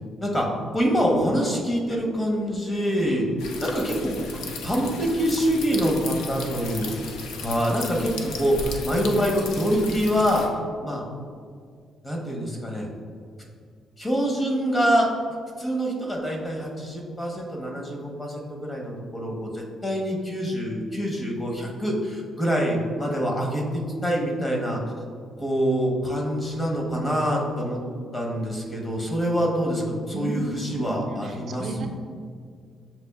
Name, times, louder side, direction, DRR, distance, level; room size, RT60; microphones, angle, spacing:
voice 1, 0.7-3.3 3.6-6.9 7.4-10.5 10.8-11.0 12.0-12.9 14.0-15.1 15.6-24.8 25.4-27.8 28.1-31.9, equal, 25° left, 0 dB, 0.9 m, -25 dB
sound 1, 3.4-10.5, left 3 dB, 85° left, 0.4 m, -35 dB
voice 2, 30.1-31.9, right 1 dB, 60° right, 4 dB, 0.4 m, -34 dB
7.4 x 2.5 x 2.3 m, 2.1 s
cardioid pair, 90°, 0 cm